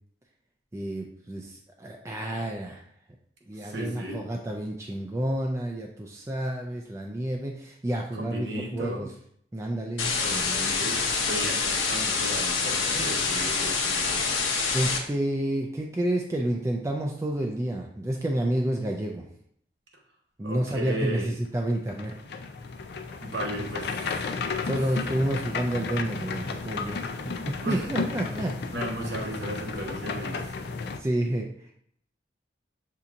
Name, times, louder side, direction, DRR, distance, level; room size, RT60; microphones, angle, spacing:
voice 1, 0.7-2.8 3.5-9.1 9.5-11.0 14.7-19.3 20.4-22.2 24.6-28.6 31.0-31.8, right 1 dB, 15° right, 0 dB, 0.3 m, -30 dB
voice 2, 3.6-4.2 8.1-9.1 10.1-14.3 20.4-21.3 23.2-24.3 24.6-25.0 27.6-27.9 28.7-30.5, right 1 dB, 60° right, 0 dB, 1.0 m, -35 dB
sound 1, 10.0-15.0, left 4 dB, 85° left, 0.8 m, -26 dB
sound 2, 21.7-31.0, left 4 dB, 55° left, 0.4 m, -33 dB
6.9 x 2.8 x 2.5 m, 0.66 s
head